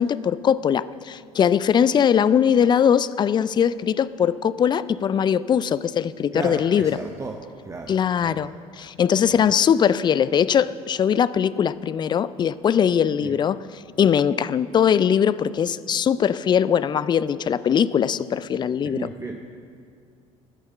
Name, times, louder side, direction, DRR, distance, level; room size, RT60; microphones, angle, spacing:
voice 1, 0.0-7.0 7.9-8.5 8.8-13.6 14.0-19.1, left 8 dB, 25° left, 17 dB, 0.4 m, -21 dB
voice 2, 6.3-7.4 7.6-8.5 9.3-9.4 13.2-13.3 18.8-19.4, right 3 dB, 15° right, 2 dB, 0.8 m, -34 dB
13.0 x 6.4 x 7.5 m, 2.3 s
figure-of-eight pair, 60°, 17 cm